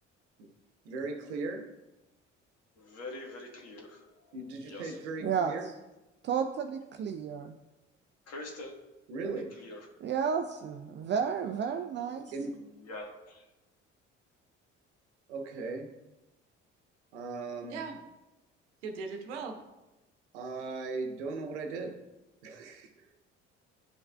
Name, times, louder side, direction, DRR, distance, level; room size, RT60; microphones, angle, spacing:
voice 1, 0.8-1.7 4.3-5.7 9.1-9.6 12.3-12.6 15.3-15.9 17.1-18.0 18.8-19.6 20.3-22.0 22.4-23.1, right 3 dB, 70° right, 5 dB, 0.9 m, -38 dB
voice 2, 2.7-4.4 4.6-5.0 8.3-8.7 9.5-9.9 12.3-13.5, left 2 dB, 45° left, 0 dB, 1.5 m, -45 dB
voice 3, 5.2-5.6 6.2-7.5 10.0-12.3, right 7 dB, 30° right, 6 dB, 0.4 m, -32 dB
10.0 x 5.4 x 2.3 m, 1.0 s
figure-of-eight pair, 50°, 36 cm